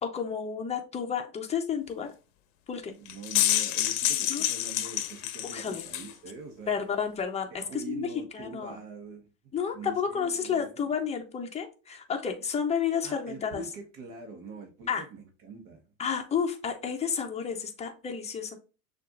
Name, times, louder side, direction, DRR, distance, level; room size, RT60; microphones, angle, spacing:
voice 1, 0.0-2.1 2.7-2.9 4.3-4.4 5.4-5.8 6.7-8.8 9.5-13.6 14.9-15.0 16.0-18.6, left 7 dB, 15° left, 0.7 m, -31 dB
voice 2, 3.0-6.8 7.5-9.3 9.7-10.9 13.0-15.8, right 4 dB, 45° right, 1.2 m, -43 dB
sound 1, 3.1-6.1, left 13 dB, 60° left, 0.7 m, -28 dB
6.5 x 2.6 x 2.5 m
hypercardioid pair, 110°, 45 cm